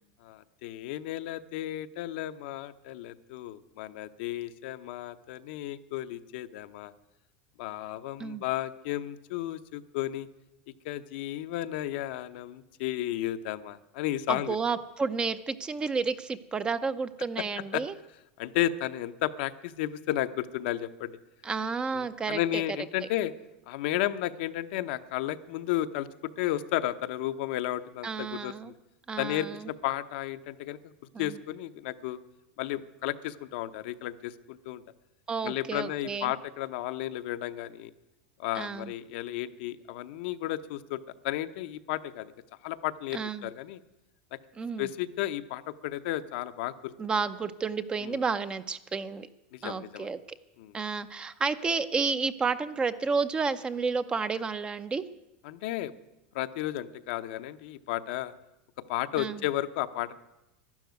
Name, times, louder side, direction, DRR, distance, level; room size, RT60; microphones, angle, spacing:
voice 1, 0.2-6.9 7.6-10.3 10.8-14.6 17.7-17.8 18.4-21.2 21.9-23.3 23.7-28.8 29.2-30.8 31.2-32.2 32.6-34.8 35.4-37.9 38.4-42.3 42.6-43.8 44.3-44.4 44.8-46.9 48.0-48.2 49.5-50.1 50.6-50.7 55.4-55.9 56.3-58.3 58.9-60.2, left 14 dB, 65° left, 10 dB, 0.8 m, -33 dB
voice 2, 14.3-17.9 21.4-22.6 28.0-28.7 29.1-29.7 31.1-31.4 35.3-36.3 38.5-38.9 43.1-43.5 44.6-44.9 47.0-49.3 49.6-50.2 50.7-55.0 59.2-59.4, right 5 dB, 15° right, 13 dB, 0.6 m, -31 dB
12.0 x 11.5 x 9.3 m, 0.95 s
supercardioid pair, 145°, 6 cm